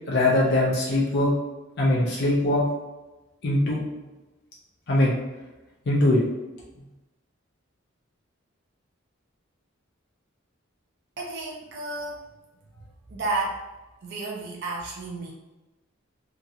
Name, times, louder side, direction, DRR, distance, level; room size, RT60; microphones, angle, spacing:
voice 1, 0.1-1.4 1.8-2.7 3.4-3.9 4.9-5.2 5.9-6.2, left 1 dB, 55° left, -4 dB, 0.5 m, -21 dB
voice 2, 11.2-12.3 12.7-13.6 14.0-15.3, right 2 dB, 55° right, -3 dB, 0.5 m, -32 dB
2.8 x 2.7 x 2.4 m, 1.1 s
head